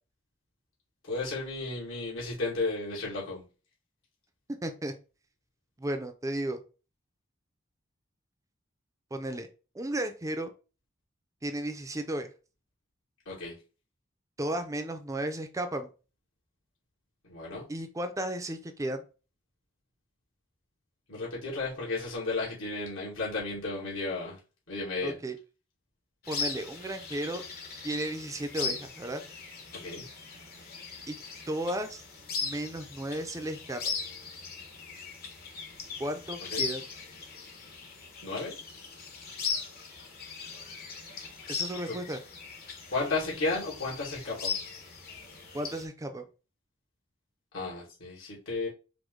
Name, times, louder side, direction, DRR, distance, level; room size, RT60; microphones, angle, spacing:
voice 1, 1.0-3.4 13.3-13.5 17.2-17.7 21.1-24.4 24.7-25.2 29.8-30.0 36.4-36.7 38.2-38.6 41.9-42.0 42.9-44.6 47.5-48.7, left 3 dB, 80° left, -6 dB, 2.2 m, -33 dB
voice 2, 4.6-4.9 5.8-6.6 9.1-9.5 9.7-10.5 11.4-12.3 14.4-15.9 17.7-19.0 25.0-25.4 26.3-27.4 27.8-29.2 31.1-31.2 31.5-32.0 32.4-33.8 36.0-36.8 41.5-42.2 45.5-46.2, right 1 dB, 15° right, 7 dB, 0.5 m, -34 dB
sound 1, 26.2-45.8, left 5 dB, 50° left, 1.0 m, -39 dB
5.0 x 2.1 x 3.7 m, 0.33 s
head